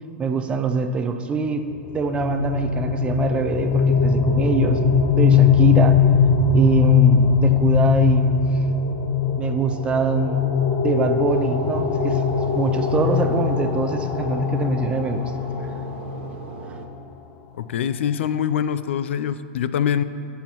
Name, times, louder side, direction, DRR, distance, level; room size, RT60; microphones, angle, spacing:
voice 1, 0.2-1.7 1.9-4.8 5.1-6.0 6.5-8.3 9.4-10.5 10.8-12.2 12.5-15.2, right 5 dB, 15° right, 8 dB, 0.4 m, -24 dB
sound 1, 1.7-16.4, left 6 dB, 30° left, 0.7 m, -20 dB
sound 2, 11.3-16.9, right 3 dB, 65° right, 0.9 m, -38 dB
voice 2, 17.6-20.0, left 9 dB, 80° left, 13 dB, 0.4 m, -24 dB
14.5 x 5.6 x 3.0 m, 2.7 s
supercardioid pair, 140°, 6 cm